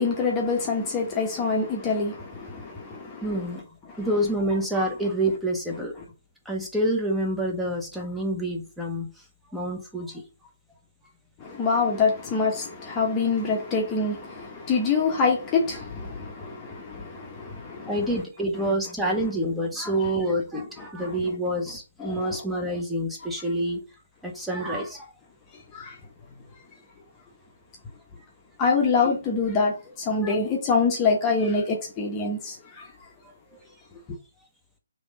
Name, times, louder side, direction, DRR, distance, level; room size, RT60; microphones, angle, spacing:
voice 1, 0.0-3.4 4.0-4.1 11.4-18.0 20.8-21.1 22.0-22.4 25.5-26.0 26.4-26.5 28.6-32.9 33.5-33.6, left 4 dB, 20° left, 0.9 m, -26 dB
voice 2, 3.2-3.7 4.0-5.9 6.4-9.2 9.5-10.2 17.9-23.8 24.2-25.1 30.2-30.4, right 1 dB, 5° right, 0.9 m, -27 dB
3.5 x 3.0 x 3.7 m
figure-of-eight pair, 140°, 0 cm